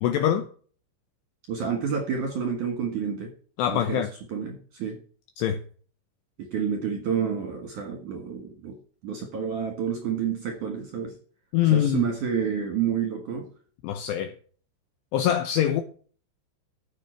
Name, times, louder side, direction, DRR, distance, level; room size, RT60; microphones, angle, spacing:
voice 1, 0.0-0.5 3.6-4.1 5.4-5.6 11.5-12.0 13.8-14.3 15.1-15.8, left 11 dB, 85° left, 2.5 m, -23 dB
voice 2, 1.5-3.3 3.7-5.0 6.4-8.8 9.0-11.2 11.6-13.5, right 7 dB, 60° right, 2.2 m, -29 dB
14.5 x 7.1 x 4.5 m
omnidirectional pair, 5.8 m